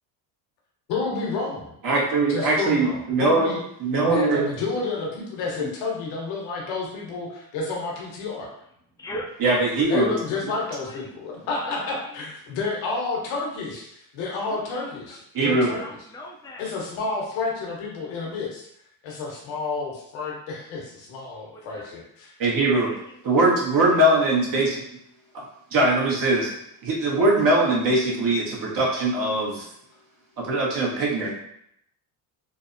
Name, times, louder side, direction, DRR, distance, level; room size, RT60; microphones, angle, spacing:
voice 1, 0.9-1.7 2.3-3.6 4.1-8.5 9.9-16.0 16.6-18.7 19.0-22.3, left 3 dB, 80° left, -2 dB, 1.0 m, -30 dB
voice 2, 1.8-3.5 3.8-4.4 5.6-5.7 9.4-10.1 15.3-15.8 22.4-22.9 23.2-24.8 25.3-25.4 25.7-26.5 26.8-29.6 30.4-31.3, right 2 dB, 50° right, -3 dB, 1.1 m, -21 dB
voice 3, 9.0-9.5 10.0-10.1 10.5-11.1 11.6-12.2 14.5-14.9 15.3-16.7 18.2-18.3 21.5-21.9 22.6-23.2, left 1 dB, 10° left, -1 dB, 0.5 m, -40 dB
3.2 x 2.0 x 2.5 m, 0.74 s
supercardioid pair, 85°, 44 cm